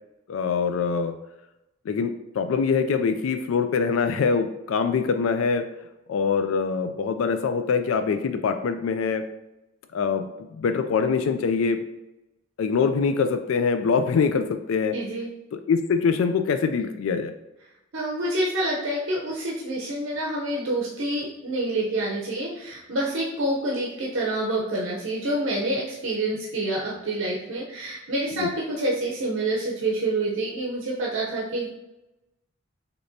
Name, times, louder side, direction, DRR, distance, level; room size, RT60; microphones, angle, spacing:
voice 1, 0.3-1.2 1.8-5.7 6.1-9.2 9.9-11.8 12.6-15.0 15.5-17.3 28.4-28.5, left 5 dB, 80° left, 8 dB, 0.3 m, -24 dB
voice 2, 14.9-15.3 17.9-28.5 28.8-31.7, right 1 dB, 70° right, -4 dB, 0.8 m, -27 dB
6.6 x 2.9 x 2.7 m, 0.94 s
head